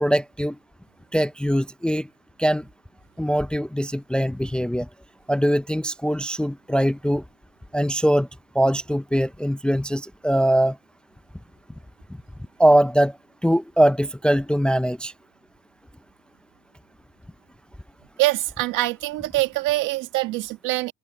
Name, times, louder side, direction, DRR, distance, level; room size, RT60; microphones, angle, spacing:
voice 1, 0.0-0.6 1.1-2.1 2.4-2.6 3.2-4.9 5.3-7.2 7.7-8.3 8.5-10.8 12.6-13.2 13.4-15.1, equal, 5° left, 0.5 m, -21 dB
voice 2, 18.2-20.9, right 18 dB, 75° right, 2.0 m, -24 dB
open air
cardioid pair, 120°, 32 cm